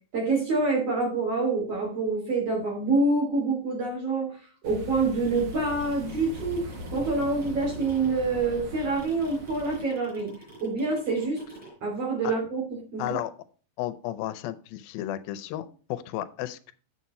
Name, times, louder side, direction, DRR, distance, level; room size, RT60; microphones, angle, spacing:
voice 1, 0.1-4.4 4.6-10.3 10.6-11.4 11.8-12.6 12.9-13.2, right 3 dB, 45° right, 0 dB, 3.4 m, -26 dB
sound 1, 4.6-9.8, equal, 90° right, 0.9 m, -40 dB
sound 2, 5.0-11.7, right 2 dB, ahead, 4.3 m, -49 dB
voice 2, 13.0-13.3 13.8-16.7, left 14 dB, 85° left, 12 dB, 2.4 m, -33 dB
8.2 x 6.8 x 4.2 m, 0.39 s
omnidirectional pair, 4.1 m